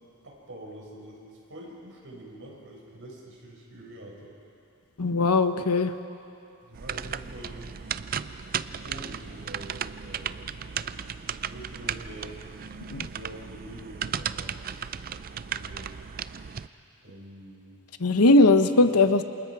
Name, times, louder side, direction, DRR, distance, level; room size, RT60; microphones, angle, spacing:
voice 1, 0.2-4.3 6.6-7.7 8.7-11.0 11.4-12.4 13.0-14.9 15.4-15.9 17.0-17.7, right 1 dB, 60° right, -2 dB, 5.8 m, -45 dB
voice 2, 5.0-5.9 12.9-13.1 18.0-19.2, left 2 dB, 85° left, 9 dB, 1.0 m, -19 dB
sound 1, 6.7-16.7, right 8 dB, 40° right, 0.4 m, -35 dB
28.0 x 27.0 x 4.8 m, 2.7 s
head